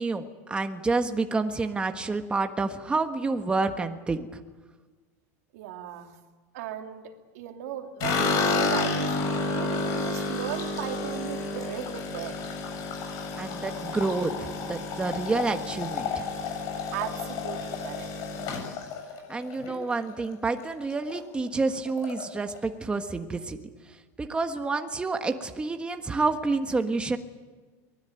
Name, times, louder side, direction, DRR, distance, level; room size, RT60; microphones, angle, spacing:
voice 1, 0.0-4.4 13.4-16.3 19.3-23.6 24.2-27.2, right 3 dB, 10° right, 6 dB, 1.4 m, -29 dB
voice 2, 5.5-6.1 6.5-9.1 9.5-12.4 16.9-18.1, right 10 dB, 75° right, 4 dB, 2.9 m, -37 dB
sound 1, 8.0-20.3 20.6-21.2 21.5-21.6 21.9-22.6, left 3 dB, 50° left, 7.5 m, -31 dB
23.5 x 20.0 x 9.2 m, 1.4 s
supercardioid pair, 135°, 8 cm